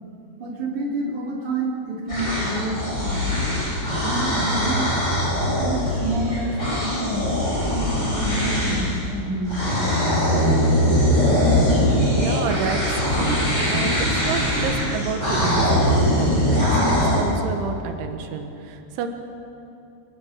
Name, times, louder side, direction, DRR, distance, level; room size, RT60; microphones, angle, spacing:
voice 1, 0.4-3.5 4.0-4.8 5.6-10.1, right 1 dB, 45° right, -1 dB, 4.4 m, -29 dB
sound 1, 2.1-9.0 9.5-17.2, equal, 15° left, 7.5 m, -21 dB
voice 2, 12.1-19.1, right 6 dB, 85° right, 6 dB, 3.9 m, -30 dB
27.0 x 19.5 x 6.7 m, 2.7 s
omnidirectional pair, 5.3 m